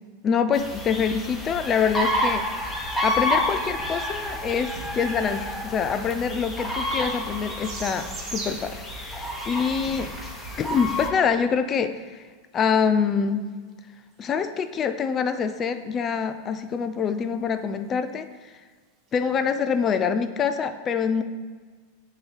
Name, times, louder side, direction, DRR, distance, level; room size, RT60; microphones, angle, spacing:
voice 1, 0.2-10.1 10.6-12.2 12.5-13.4 14.2-18.3 19.1-21.2, left 6 dB, 30° left, 9 dB, 0.4 m, -25 dB
sound 1, 0.5-11.1, left 1 dB, 5° left, 1.2 m, -29 dB
sound 2, 6.9-8.8 9.9-10.1 11.1-11.2 14.1-14.2 19.1-19.2 19.6-19.9, right 4 dB, 40° right, 1.1 m, -38 dB
7.3 x 2.9 x 4.8 m, 1.5 s
hypercardioid pair, 115°, 0 cm